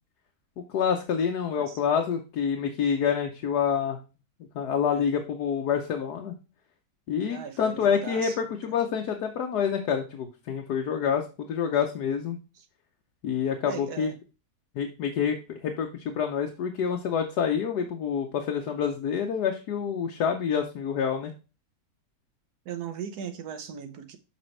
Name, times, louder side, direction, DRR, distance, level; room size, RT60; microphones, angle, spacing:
voice 1, 0.6-4.0 4.5-6.3 7.1-12.4 13.2-14.1 14.7-21.3, left 7 dB, 85° left, 1.4 m, -27 dB
voice 2, 7.3-8.5 11.0-11.1 13.6-14.1 22.6-24.2, right 7 dB, 80° right, 1.5 m, -38 dB
7.0 x 5.2 x 3.2 m
omnidirectional pair, 1.7 m